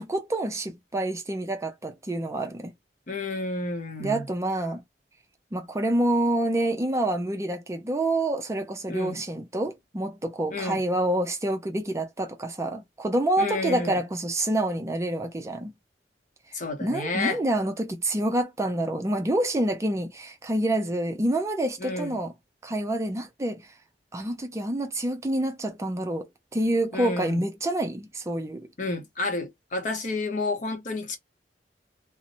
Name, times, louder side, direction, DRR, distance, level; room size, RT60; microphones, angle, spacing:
voice 1, 0.0-2.7 4.0-4.8 5.5-15.7 16.8-22.3 22.6-23.6 24.1-28.7, right 1 dB, 15° right, 0.4 m, -27 dB
voice 2, 3.1-4.3 8.9-9.2 10.5-10.8 13.4-14.0 16.5-17.4 21.8-22.2 26.9-27.4 28.8-31.2, left 3 dB, 45° left, 0.7 m, -30 dB
2.6 x 2.0 x 2.8 m
head